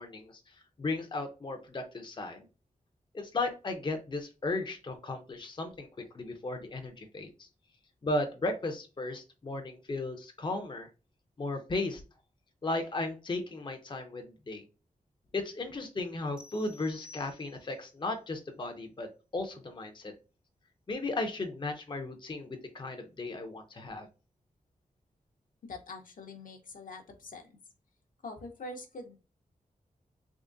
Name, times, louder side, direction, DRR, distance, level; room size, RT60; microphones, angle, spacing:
voice 1, 0.0-2.5 3.1-7.5 8.0-10.9 11.4-12.0 12.6-14.6 15.3-19.1 19.3-20.1 20.9-24.1, left 2 dB, 35° left, 5 dB, 0.6 m, -35 dB
sound 1, 16.4-17.9, left 4 dB, 5° right, 0.7 m, -54 dB
voice 2, 25.6-27.5 28.2-29.2, left 2 dB, 70° left, 3 dB, 0.8 m, -44 dB
3.6 x 3.0 x 2.5 m, 0.31 s
wide cardioid pair, 100°, 15 cm